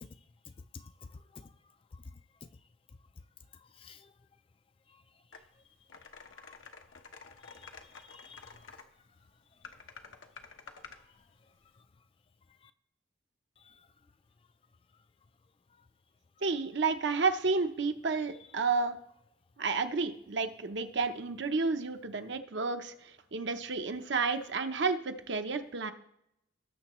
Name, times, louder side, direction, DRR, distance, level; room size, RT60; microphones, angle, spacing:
voice 1, 3.8-4.1 6.4-6.5 7.4-8.5 13.7-13.8, left 5 dB, 30° left, 12 dB, 0.3 m, -51 dB
sound 1, 5.3-5.4 5.9-8.9 9.6-11.0, left 5 dB, 90° left, 0.9 m, -50 dB
voice 2, 16.4-19.0 19.6-25.9, right 4 dB, 65° right, 7 dB, 0.8 m, -31 dB
18.5 x 6.7 x 3.1 m, 0.78 s
head